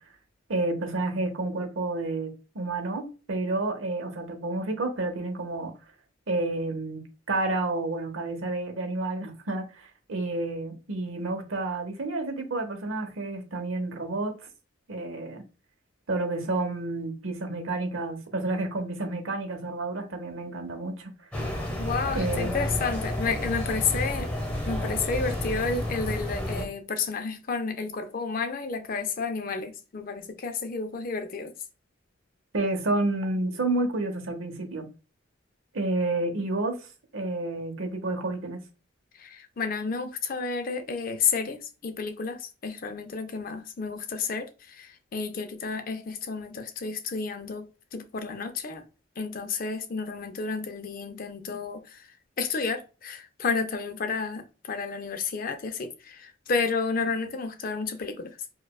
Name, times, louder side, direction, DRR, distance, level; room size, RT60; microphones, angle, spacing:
voice 1, 0.5-5.7 6.3-14.5 14.9-15.4 16.1-21.1 22.1-22.5 32.5-34.9 35.7-36.8 37.1-38.6, right 2 dB, 85° right, 0.8 m, -30 dB
sound 1, 21.3-26.6, left 1 dB, 5° left, 0.9 m, -31 dB
voice 2, 21.8-24.3 24.7-31.5 39.2-47.7 47.9-48.8 49.2-52.1 52.4-58.4, left 4 dB, 45° left, 0.4 m, -31 dB
4.7 x 2.2 x 2.2 m
head